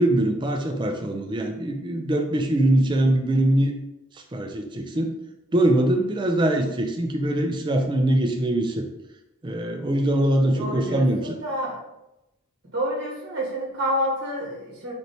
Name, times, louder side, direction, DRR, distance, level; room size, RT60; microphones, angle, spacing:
voice 1, 0.0-3.7 4.1-5.1 5.5-8.9 9.4-11.3, right 1 dB, 20° right, 4 dB, 0.3 m, -22 dB
voice 2, 10.6-11.8 12.6-14.9, equal, 50° right, -4 dB, 1.0 m, -28 dB
4.2 x 3.2 x 2.7 m, 0.90 s
head